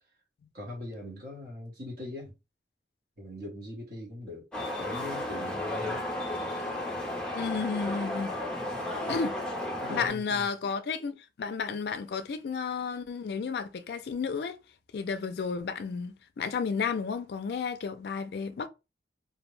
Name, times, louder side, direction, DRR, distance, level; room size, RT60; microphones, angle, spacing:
voice 1, 0.5-2.3 3.2-4.5 4.8-6.7 9.0-9.3 9.8-10.5, left 1 dB, 50° right, 1.0 m, -42 dB
sound 1, 4.5-10.1, left 1 dB, 5° left, 0.5 m, -33 dB
voice 2, 7.3-8.4 9.1-9.4 9.9-14.6 14.9-18.7, left 5 dB, 65° left, 0.3 m, -32 dB
2.5 x 2.0 x 3.1 m
head